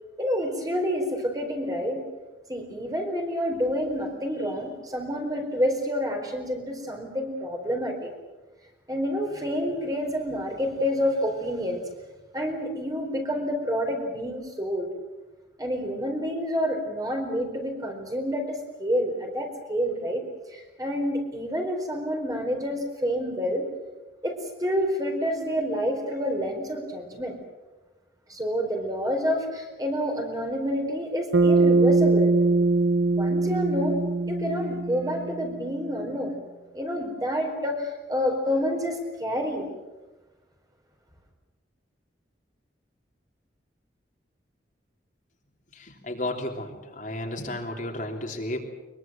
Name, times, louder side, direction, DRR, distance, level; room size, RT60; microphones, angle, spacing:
voice 1, 0.2-2.0 2.5-8.1 8.9-11.8 12.3-14.9 15.6-20.2 20.5-23.7 24.2-27.4 28.3-32.3 33.1-34.0 34.3-36.4 36.7-39.7, equal, 20° right, 2 dB, 4.6 m, -28 dB
Bass guitar, 31.3-35.7, right 3 dB, 80° right, 0.9 m, -22 dB
voice 2, 45.8-48.7, left 1 dB, 45° left, 2 dB, 3.3 m, -33 dB
23.5 x 23.0 x 7.6 m, 1.1 s
head